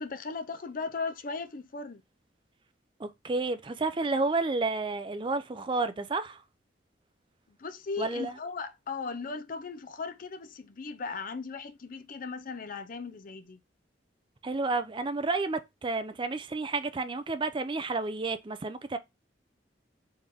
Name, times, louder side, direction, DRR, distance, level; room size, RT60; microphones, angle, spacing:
voice 1, 0.0-2.0 7.6-13.6, left 4 dB, 50° left, 0.5 m, -37 dB
voice 2, 3.0-6.4 8.0-8.3 14.4-19.0, right 3 dB, 25° right, 0.4 m, -31 dB
4.2 x 3.4 x 3.5 m
head